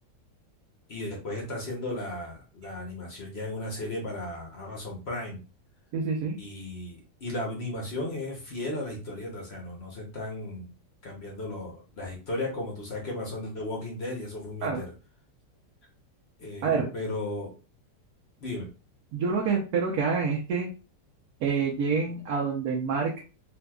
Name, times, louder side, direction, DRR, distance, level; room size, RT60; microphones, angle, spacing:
voice 1, 0.9-5.4 6.4-10.7 11.0-14.9 16.4-17.5 18.4-18.7, left 2 dB, 50° left, 0 dB, 0.8 m, -35 dB
voice 2, 5.9-6.4 14.6-14.8 16.6-16.9 19.1-20.7 21.4-23.1, right 5 dB, 65° right, -1 dB, 1.1 m, -27 dB
3.8 x 2.6 x 2.2 m, 0.33 s
omnidirectional pair, 1.8 m